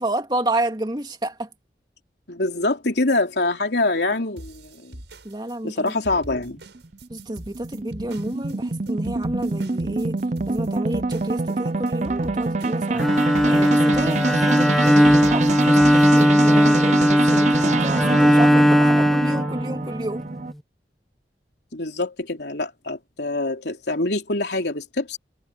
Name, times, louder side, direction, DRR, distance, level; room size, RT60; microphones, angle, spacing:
voice 1, 0.0-1.5 5.2-5.9 7.1-10.2 10.5-13.1 13.4-20.2, right 1 dB, 25° right, 2.5 m, -30 dB
voice 2, 2.3-5.0 5.6-6.6 21.7-25.2, left 2 dB, 75° left, 3.2 m, -25 dB
sound 1, 4.4-16.3, right 1 dB, 85° right, 6.8 m, -43 dB
sound 2, 6.3-20.5, right 3 dB, 40° right, 0.6 m, -26 dB
Bowed string instrument, 12.9-20.1, equal, ahead, 1.2 m, -18 dB
head